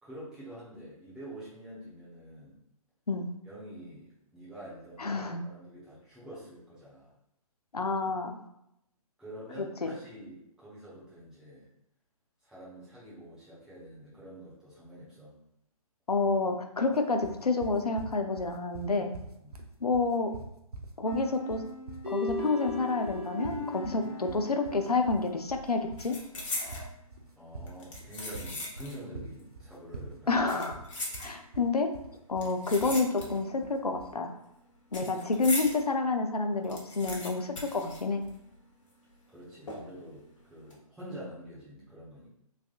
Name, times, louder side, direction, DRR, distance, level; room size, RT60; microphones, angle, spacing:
voice 1, 0.0-2.6 3.4-7.1 9.2-11.7 12.4-15.3 19.4-19.6 27.4-30.4 39.3-40.2 40.5-42.3, equal, 5° right, -10 dB, 1.1 m, -46 dB
voice 2, 5.0-5.4 7.7-8.4 9.6-9.9 16.1-19.1 19.8-20.3 21.0-21.6 22.1-26.2 26.6-26.9 30.3-30.8 31.2-31.9 32.3-34.3 34.9-38.2, left 3 dB, 85° left, 5 dB, 0.5 m, -29 dB
sound 1, 17.2-34.2, right 3 dB, 85° right, 0.6 m, -45 dB
sound 2, 21.0-25.7, left 2 dB, 25° right, 1.4 m, -38 dB
sound 3, 24.9-25.2 25.5-26.9 27.7-29.1 29.4-29.5 30.3-31.7 32.4-33.6 33.8-35.8 36.2-36.3 36.5-38.6 38.9-39.0 39.7-40.1 40.5-40.7, left 2 dB, 55° left, 1.1 m, -39 dB
3.5 x 3.3 x 2.4 m, 0.79 s
figure-of-eight pair, 130°, 19 cm